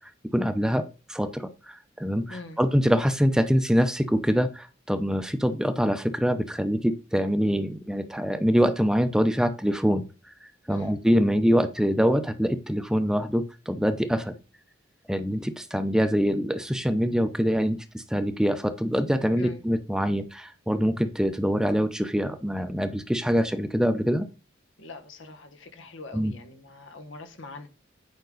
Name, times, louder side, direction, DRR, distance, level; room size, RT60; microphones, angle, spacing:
voice 1, 0.3-0.8 1.1-10.1 10.7-14.3 15.1-24.3 26.1-26.3, equal, 5° right, 0.6 m, -24 dB
voice 2, 24.8-27.7, left 3 dB, 85° left, 1.5 m, -43 dB
9.2 x 5.3 x 4.0 m
head